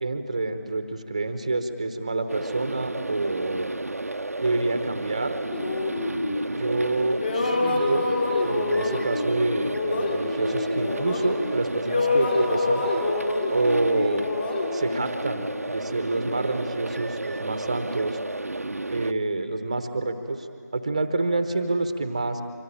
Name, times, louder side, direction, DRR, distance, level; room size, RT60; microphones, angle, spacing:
voice 1, 0.0-3.7 4.4-5.4 6.5-8.0 8.4-12.9 13.5-14.3 14.7-18.2 18.9-20.5 20.7-22.4, right 2 dB, 20° right, 9 dB, 1.0 m, -27 dB
sound 1, 2.3-19.1, right 2 dB, 55° right, 0.7 m, -33 dB
sound 2, 5.5-6.9 7.2-11.6 11.9-15.7, left 3 dB, 35° left, 2.9 m, -27 dB
25.0 x 24.5 x 8.8 m, 2.5 s
figure-of-eight pair, 170°, 10 cm